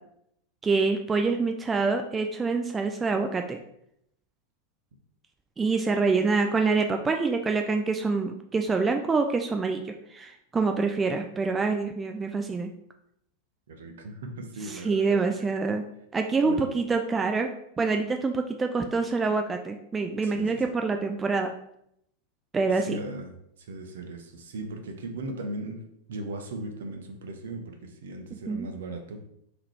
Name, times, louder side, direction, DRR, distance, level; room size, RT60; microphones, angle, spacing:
voice 1, 0.6-3.6 5.6-12.7 14.7-15.8 16.1-17.5 17.8-21.5 22.5-23.0 28.5-28.7, right 4 dB, 15° right, 5 dB, 0.3 m, -26 dB
voice 2, 13.7-15.3 16.4-16.7 20.2-20.6 22.7-25.8 26.1-29.3, right 2 dB, 60° right, 4 dB, 0.8 m, -38 dB
3.7 x 2.9 x 4.5 m, 0.74 s
figure-of-eight pair, 90°, 0 cm